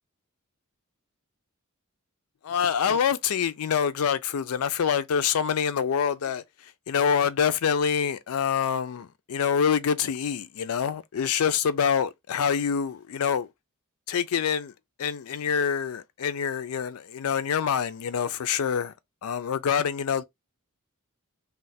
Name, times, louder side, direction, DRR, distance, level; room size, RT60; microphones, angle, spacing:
voice 1, 2.4-13.5 14.1-14.7 15.0-18.9 19.2-20.2, left 7 dB, 70° left, 0.4 m, -26 dB
2.4 x 2.1 x 3.9 m
head